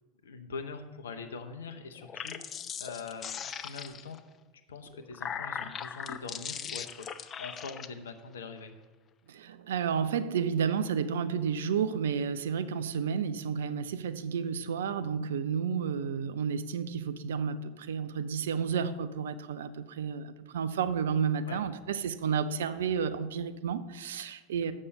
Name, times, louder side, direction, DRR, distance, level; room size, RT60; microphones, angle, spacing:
voice 1, 0.2-4.2 4.7-8.8 21.5-21.6, left 4 dB, 70° left, 8 dB, 0.7 m, -43 dB
sound 1, 2.0-4.2 4.9-7.9, left 7 dB, 30° left, 0.4 m, -39 dB
voice 2, 9.3-24.7, right 7 dB, 65° right, 12 dB, 0.4 m, -31 dB
6.9 x 5.4 x 6.6 m, 1.2 s
figure-of-eight pair, 80°, 0 cm